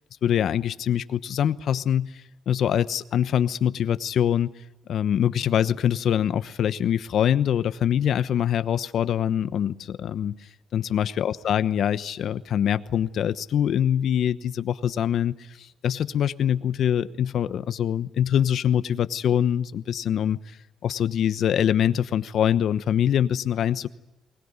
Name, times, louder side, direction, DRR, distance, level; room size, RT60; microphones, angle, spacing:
voice 1, 0.2-4.5 4.9-10.4 10.7-20.6 20.8-23.9, left 9 dB, 65° left, 13 dB, 1.0 m, -24 dB
22.0 x 20.0 x 9.6 m, 0.99 s
cardioid pair, 90°, 0 cm